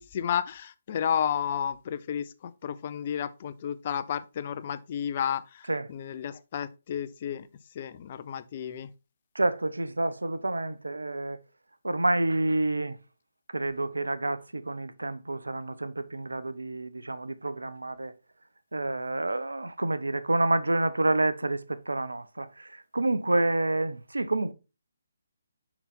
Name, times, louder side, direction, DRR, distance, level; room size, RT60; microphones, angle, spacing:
voice 1, 0.0-7.5 7.7-8.9, left 8 dB, 40° left, 0.6 m, -32 dB
voice 2, 9.3-11.4 11.8-13.0 13.5-18.1 18.7-24.5, right 2 dB, 80° right, 0.6 m, -28 dB
5.9 x 5.6 x 4.2 m
figure-of-eight pair, 145°, 0 cm